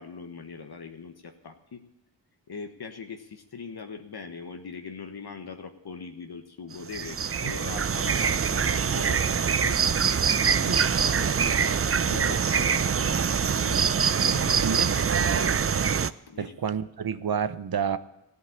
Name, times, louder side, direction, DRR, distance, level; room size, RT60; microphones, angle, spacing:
voice 1, 0.0-1.8 2.5-13.8 14.2-15.1 16.3-16.5, left 5 dB, 55° left, 5 dB, 1.3 m, -41 dB
sound 1, 6.7-16.1, right 6 dB, 30° right, 0.6 m, -24 dB
voice 2, 7.4-7.8 10.7-10.8 13.4-13.5 14.6-15.6 16.4-18.0, right 7 dB, 55° right, 14 dB, 0.9 m, -30 dB
14.5 x 8.2 x 8.7 m, 0.94 s
cardioid pair, 45°, 44 cm